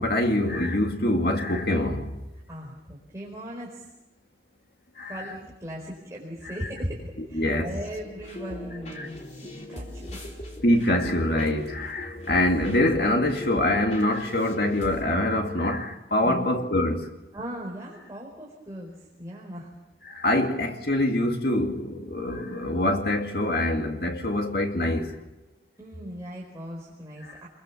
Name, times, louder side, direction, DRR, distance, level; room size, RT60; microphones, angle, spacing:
voice 1, 0.0-2.1 5.0-5.2 6.4-6.6 7.2-7.7 9.0-9.1 10.6-17.1 20.0-25.2 27.2-27.4, left 1 dB, 60° left, 2.4 m, -25 dB
voice 2, 2.5-3.9 5.0-10.4 16.2-16.5 17.3-19.7 25.8-27.5, equal, 15° right, 4.6 m, -38 dB
sound 1, 7.9-15.0, left 1 dB, 40° left, 3.8 m, -40 dB
29.5 x 22.0 x 7.2 m
head